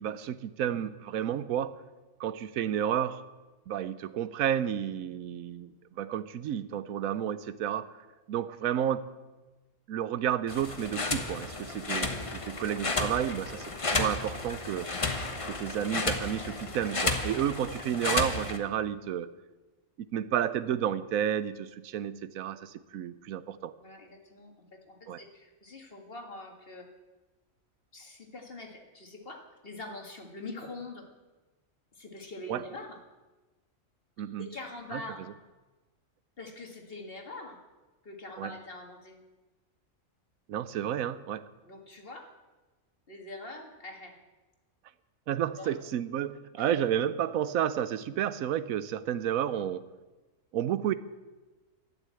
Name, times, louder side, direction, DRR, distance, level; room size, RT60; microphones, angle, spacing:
voice 1, 0.0-1.7 2.2-3.2 3.7-7.9 8.3-9.1 9.9-14.9 15.5-19.3 20.0-23.7 25.1-25.2 32.5-32.6 34.2-34.5 34.9-35.0 38.4-38.5 40.5-41.5 45.3-49.8 50.5-50.9, right 10 dB, 90° right, 14 dB, 1.1 m, -31 dB
sound 1, 10.5-18.6, left 3 dB, 25° left, 1.0 m, -32 dB
voice 2, 23.8-26.9 27.9-31.1 31.9-33.0 34.4-35.3 36.4-37.6 38.0-39.2 41.6-42.3 43.1-44.2 45.6-45.7 46.6-46.7, left 2 dB, 45° left, 3 dB, 2.0 m, -44 dB
12.0 x 9.7 x 8.3 m, 1.2 s
omnidirectional pair, 1.4 m